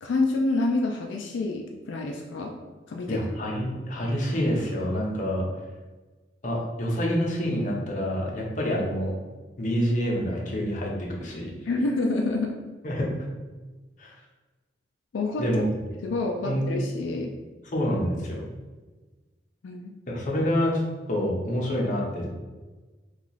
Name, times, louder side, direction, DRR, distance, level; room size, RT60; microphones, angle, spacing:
voice 1, 0.0-2.5 2.9-3.2 11.7-12.5 15.1-15.4 16.0-17.3 19.6-19.9, left 2 dB, 85° left, 2 dB, 0.4 m, -27 dB
voice 2, 3.1-5.5 6.4-9.1 9.6-11.5 12.8-13.3 14.0-14.1 15.4-15.6 16.4-16.6 17.7-18.5 20.1-20.8 21.1-22.3, equal, 45° left, -2 dB, 0.7 m, -27 dB
2.9 x 2.3 x 4.0 m, 1.3 s
head